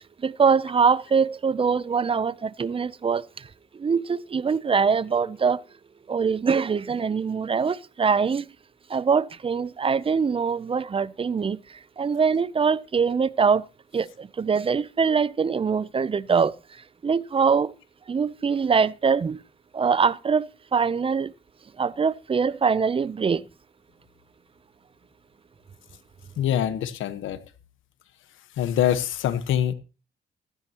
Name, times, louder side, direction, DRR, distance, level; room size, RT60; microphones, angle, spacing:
voice 1, 0.2-3.5 3.7-5.6 6.1-8.5 8.9-13.7 13.9-16.5 17.0-17.7 18.1-19.4 19.7-21.3 21.8-23.5, right 5 dB, 25° right, 0.6 m, -23 dB
voice 2, 26.4-27.4 28.6-29.7, left 10 dB, 80° left, 1.2 m, -24 dB
15.5 x 13.5 x 3.0 m
cardioid pair, 90°, 20 cm